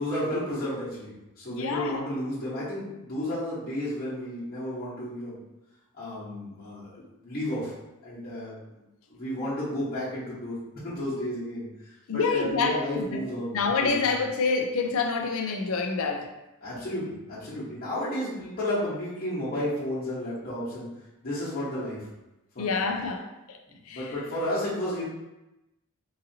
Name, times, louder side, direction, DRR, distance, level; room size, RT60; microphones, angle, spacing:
voice 1, 0.0-5.4 5.9-7.7 8.0-8.5 9.1-11.7 12.1-14.1 16.6-20.9 21.2-22.0 22.5-22.8 23.7-25.0, left 1 dB, 40° left, -9 dB, 1.1 m, -32 dB
voice 2, 1.5-2.0 12.1-13.2 13.5-16.3 22.6-23.6 23.9-24.0, left 4 dB, 65° left, 4 dB, 0.5 m, -27 dB
3.9 x 2.7 x 2.7 m, 0.96 s
head